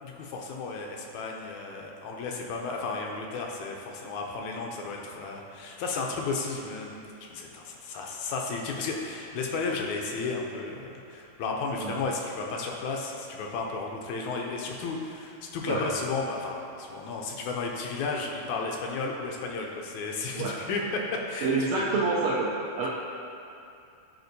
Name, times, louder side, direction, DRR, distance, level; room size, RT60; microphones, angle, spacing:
voice 1, 0.0-21.7, left 4 dB, 80° left, 0 dB, 1.9 m, -33 dB
voice 2, 21.4-22.5 22.8-22.9, right 3 dB, 85° right, -7 dB, 1.4 m, -27 dB
9.3 x 4.4 x 2.7 m, 2.6 s
omnidirectional pair, 3.4 m